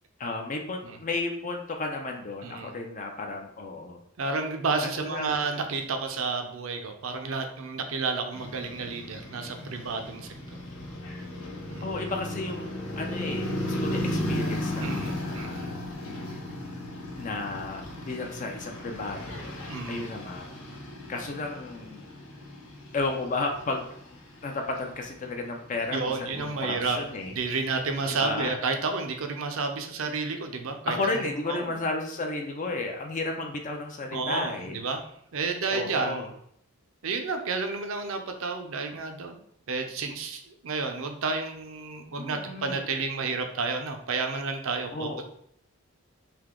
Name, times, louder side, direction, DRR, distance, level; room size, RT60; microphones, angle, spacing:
voice 1, 0.2-4.0 4.8-5.4 11.8-12.7 13.0-15.9 17.2-19.5 19.9-20.5 21.1-22.0 22.9-23.9 24.4-27.3 28.2-28.6 30.9-34.8 35.7-36.3 42.2-42.8 44.9-45.2, left 3 dB, 35° left, 3 dB, 0.4 m, -33 dB
voice 2, 4.2-10.3 11.7-11.8 14.8-15.7 19.7-20.1 25.9-27.0 27.3-30.9 31.5-31.8 34.1-35.0 35.3-36.2 37.0-39.4 39.7-45.2, right 4 dB, 65° right, 5 dB, 0.5 m, -31 dB
sound 1, 8.3-28.1, left 1 dB, 70° left, 0.9 m, -36 dB
3.4 x 2.8 x 3.6 m, 0.70 s
head